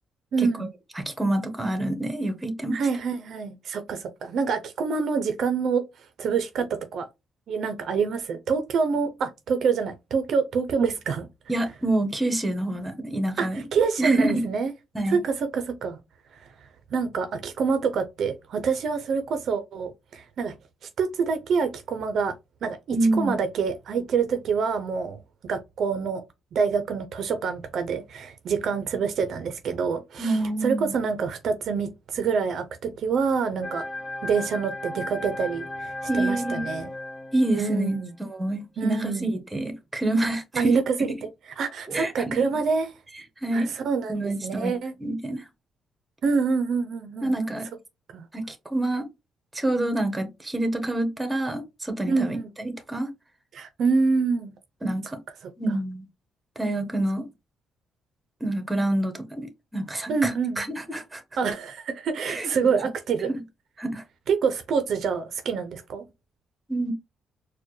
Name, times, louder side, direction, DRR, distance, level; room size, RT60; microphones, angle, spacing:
voice 1, 0.3-0.7 2.7-5.8 6.2-7.1 7.5-11.3 12.7-12.8 13.4-14.7 15.1-16.0 16.4-16.5 16.9-20.5 21.0-22.3 22.6-26.2 26.5-33.8 34.2-36.9 37.6-38.1 38.8-39.3 40.5-41.1 41.6-42.9 43.5-44.9 46.2-47.3 48.1-48.3 52.1-52.5 53.5-54.6 55.4-55.5 60.1-60.7 61.4-63.3 64.3-66.0, right 5 dB, 65° right, 0.5 m, -26 dB
voice 2, 0.9-2.8 11.5-13.6 14.0-14.5 14.9-15.2 22.9-23.4 30.2-30.9 36.1-36.6 37.3-40.7 41.9-42.4 43.4-43.7 44.1-44.7 45.0-45.4 47.2-47.7 48.3-49.1 49.5-53.1 54.8-55.2 55.6-56.1 56.6-57.2 58.4-61.2 62.3-62.5 63.2-63.4 63.8-64.0 66.7-66.9, right 1 dB, 15° right, 0.9 m, -27 dB
sound 1, 33.6-38.1, left 2 dB, 30° left, 0.6 m, -35 dB
4.3 x 2.1 x 3.0 m
cardioid pair, 90°, 0 cm